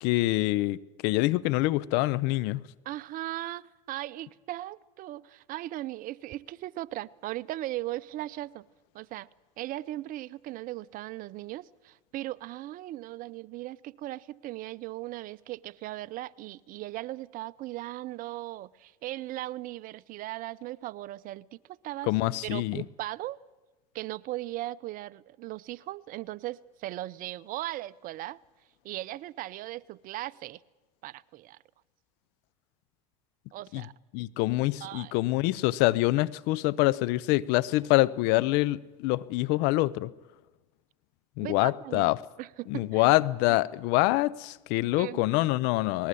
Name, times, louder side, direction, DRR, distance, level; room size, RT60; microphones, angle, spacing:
voice 1, 0.0-2.6 22.1-22.8 33.7-33.8 34.1-40.1 41.4-42.2 42.7-46.1, left 19 dB, 60° left, 0.7 m, -25 dB
voice 2, 2.8-8.6 8.9-9.3 9.6-22.1 22.4-23.4 23.9-28.4 28.8-30.6 31.0-31.6 33.5-33.9 34.8-35.2 41.4-42.1 42.4-43.1 43.5-43.6 45.0-45.2, right 16 dB, 50° right, 0.7 m, -38 dB
19.5 x 19.0 x 8.5 m
hypercardioid pair, 95°, 19 cm